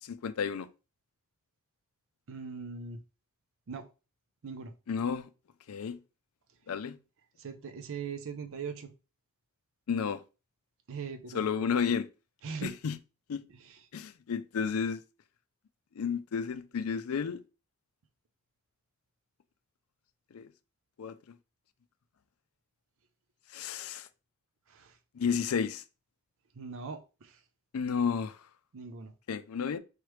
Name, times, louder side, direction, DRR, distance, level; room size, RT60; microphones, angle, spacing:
voice 1, 0.0-0.7 4.9-5.3 5.7-6.0 6.7-7.0 9.9-10.2 11.3-12.1 12.6-13.0 13.3-13.4 13.9-15.0 16.0-17.4 20.3-20.5 21.0-21.2 23.5-24.1 25.1-25.8 27.7-28.4 29.3-29.8, left 6 dB, 70° left, 0.4 m, -32 dB
voice 2, 2.3-3.0 3.7-3.9 4.4-4.7 7.4-8.9 10.9-11.4 12.4-12.7 13.5-13.8 24.7-25.0 26.6-27.4 28.7-29.1, right 5 dB, 65° right, 0.6 m, -40 dB
4.7 x 3.1 x 3.2 m
head